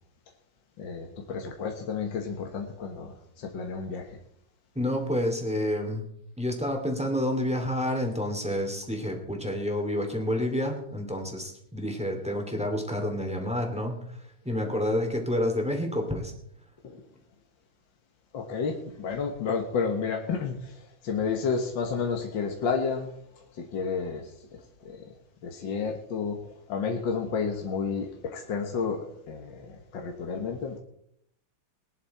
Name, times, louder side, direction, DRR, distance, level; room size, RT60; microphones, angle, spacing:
voice 1, 0.8-4.2 16.8-17.0 18.3-25.1 25.4-30.8, left 5 dB, 70° left, 2 dB, 2.1 m, -31 dB
voice 2, 4.7-6.0 6.4-14.0 14.4-16.3, left 1 dB, 5° right, 2 dB, 2.6 m, -29 dB
20.5 x 10.5 x 4.3 m, 0.71 s
omnidirectional pair, 2.1 m